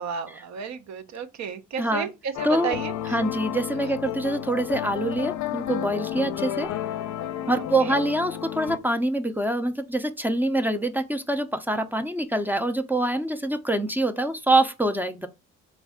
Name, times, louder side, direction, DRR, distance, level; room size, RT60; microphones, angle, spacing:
voice 1, 0.0-3.2 7.6-8.0, right 6 dB, 65° right, 0.7 m, -33 dB
voice 2, 1.8-2.1 2.4-2.8 3.1-6.7 7.5-15.3, right 1 dB, 5° right, 0.5 m, -25 dB
sound 1, 2.3-8.8, left 11 dB, 70° left, 0.5 m, -32 dB
4.2 x 2.4 x 3.5 m
cardioid pair, 90°, 30 cm